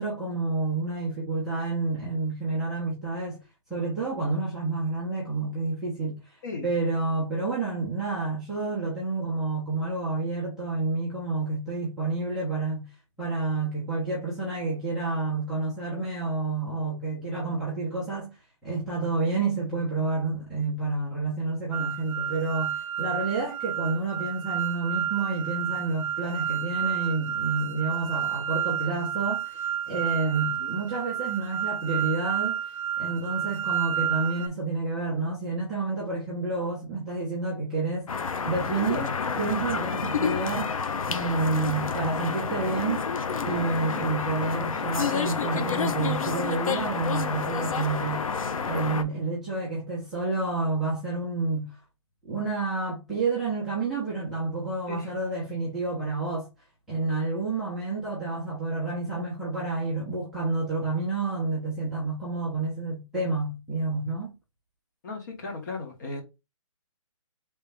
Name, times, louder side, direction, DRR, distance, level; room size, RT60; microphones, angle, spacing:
voice 1, 0.0-3.4 3.7-12.9 13.2-18.4 18.6-32.7 33.0-38.2 38.4-40.8 41.0-43.1 43.4-48.3 48.6-51.8 52.2-56.5 56.9-64.3, right 3 dB, ahead, 0.5 m, -29 dB
sound 1, 21.7-34.5, right 9 dB, 80° right, 0.4 m, -30 dB
sound 2, 38.1-49.0, left 6 dB, 90° left, 0.7 m, -29 dB
voice 2, 65.0-66.2, left 3 dB, 35° left, 1.2 m, -36 dB
3.2 x 3.0 x 3.4 m
hypercardioid pair, 170°, 17 cm